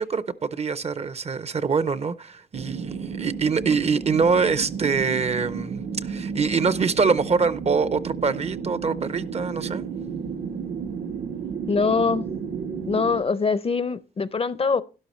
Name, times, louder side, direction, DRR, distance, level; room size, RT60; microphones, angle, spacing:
voice 1, 0.0-9.9, right 5 dB, 40° right, 0.5 m, -24 dB
sound 1, 2.5-13.2, right 6 dB, 80° right, 1.0 m, -32 dB
voice 2, 11.7-12.3 12.8-14.8, left 5 dB, 35° left, 0.5 m, -23 dB
12.0 x 11.0 x 3.1 m
wide cardioid pair, 110°, 16 cm